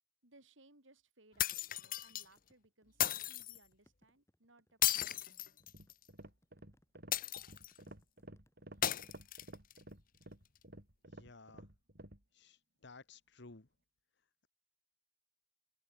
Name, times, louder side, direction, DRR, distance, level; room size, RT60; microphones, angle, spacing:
voice 1, 0.2-5.2, right 2 dB, 70° right, 5.5 m, -66 dB
sound 1, 1.4-2.3 3.0-3.6 4.8-6.0 7.1-7.8 8.8-9.8, left 12 dB, 45° left, 0.9 m, -35 dB
sound 2, 1.4-8.9, equal, 15° left, 7.4 m, -73 dB
sound 3, 5.6-12.2, right 1 dB, 50° right, 6.2 m, -54 dB
voice 2, 11.1-11.7 12.3-13.7, left 3 dB, 60° left, 1.4 m, -56 dB
open air
head